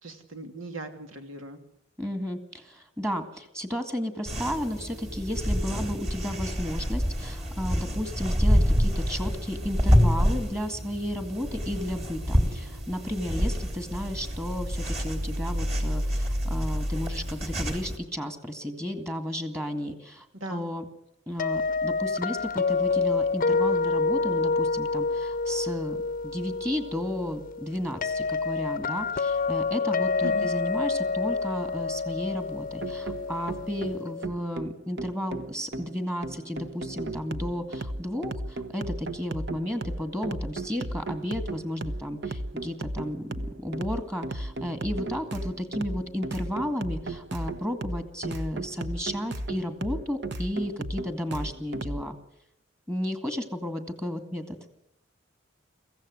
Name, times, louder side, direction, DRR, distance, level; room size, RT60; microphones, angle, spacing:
voice 1, 0.0-1.6 20.3-20.7 30.2-30.5, right 1 dB, 90° right, 6 dB, 2.8 m, -39 dB
voice 2, 2.0-20.9 21.3-26.0 26.2-52.2 52.9-54.6, left 1 dB, 15° right, 7 dB, 2.1 m, -33 dB
sound 1, 4.3-18.0, equal, 35° right, 3.5 m, -27 dB
sound 2, 21.4-34.3, left 4 dB, 45° left, 0.7 m, -28 dB
sound 3, 32.8-52.0, right 2 dB, 60° right, 1.1 m, -35 dB
23.5 x 15.5 x 7.8 m, 0.83 s
head